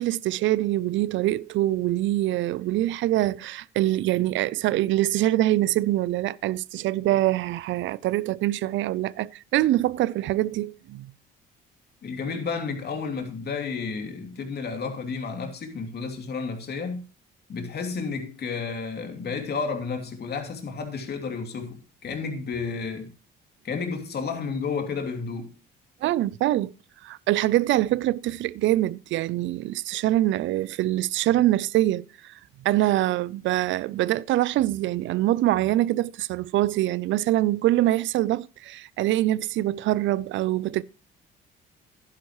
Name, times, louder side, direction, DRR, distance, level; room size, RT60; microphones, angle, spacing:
voice 1, 0.0-11.1 26.0-26.7 27.0-32.3 32.6-40.8, right 15 dB, 65° right, 0.5 m, -24 dB
voice 2, 12.0-17.0 17.5-23.1 23.6-25.5, left 5 dB, 50° left, 2.7 m, -31 dB
11.0 x 9.8 x 3.1 m
supercardioid pair, 85°, 21 cm